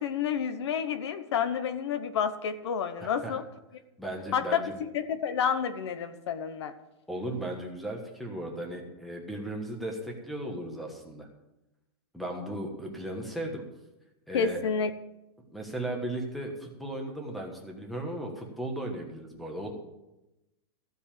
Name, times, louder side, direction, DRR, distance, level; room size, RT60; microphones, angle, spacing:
voice 1, 0.0-3.4 4.3-6.7 14.3-14.9, left 7 dB, 70° left, 11 dB, 1.0 m, -29 dB
voice 2, 3.0-3.4 4.0-4.7 7.1-11.3 12.1-13.6 14.3-14.6 15.5-19.7, right 1 dB, ahead, 1 dB, 1.4 m, -36 dB
14.5 x 5.3 x 8.8 m, 0.95 s
supercardioid pair, 175°, 15 cm